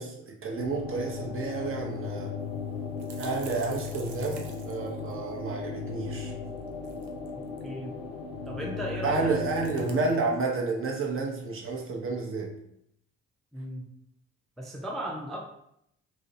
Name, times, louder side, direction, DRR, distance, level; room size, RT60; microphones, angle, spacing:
voice 1, 0.0-2.3 3.1-6.3 9.0-12.5, right 3 dB, 40° right, -1 dB, 0.7 m, -30 dB
sound 1, 0.6-10.1, left 5 dB, 75° left, 0.5 m, -37 dB
sound 2, 1.1-1.2 1.5-1.6 2.4-5.5 6.6-7.7 9.0-10.3, right 5 dB, 85° right, 0.5 m, -49 dB
voice 2, 7.6-8.0 8.5-9.3 13.5-13.9 14.6-15.4, right 1 dB, ahead, -1 dB, 0.4 m, -36 dB
2.5 x 2.0 x 2.7 m, 0.76 s
hypercardioid pair, 50°, 34 cm